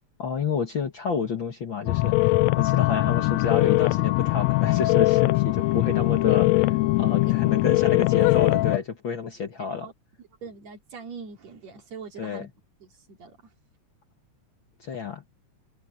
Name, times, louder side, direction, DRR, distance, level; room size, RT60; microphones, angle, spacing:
voice 1, 0.2-9.9 12.2-12.5 14.8-15.2, left 6 dB, 45° left, 1.9 m, -29 dB
sound 1, 1.9-8.8, left 20 dB, 80° left, 1.5 m, -21 dB
voice 2, 9.6-9.9 10.4-12.5 12.8-13.4, right 5 dB, 60° right, 4.0 m, -42 dB
omnidirectional pair, 3.6 m